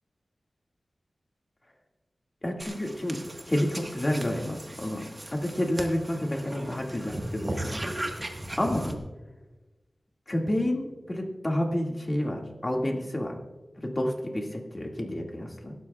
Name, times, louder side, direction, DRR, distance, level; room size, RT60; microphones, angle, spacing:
voice 1, 2.4-7.9 8.6-9.0 10.3-13.4 13.8-15.7, left 1 dB, 25° left, 0 dB, 2.1 m, -30 dB
sound 1, 2.6-9.0, right 1 dB, 25° right, 1.4 m, -37 dB
24.5 x 12.5 x 2.4 m, 1.2 s
wide cardioid pair, 85°, 0 cm